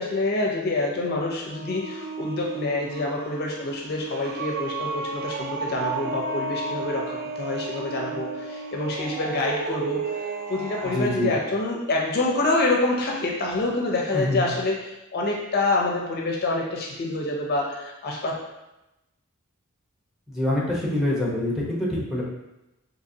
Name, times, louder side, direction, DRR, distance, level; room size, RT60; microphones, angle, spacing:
voice 1, 0.0-10.0 10.5-14.8 15.1-18.3, left 2 dB, 50° left, -1 dB, 0.5 m, -26 dB
sound 1, 0.9-11.4, right 4 dB, 50° right, 0.4 m, -33 dB
voice 2, 10.8-11.3 14.1-14.5 20.3-22.2, left 1 dB, ahead, -5 dB, 0.7 m, -25 dB
3.9 x 2.7 x 2.6 m, 0.96 s
head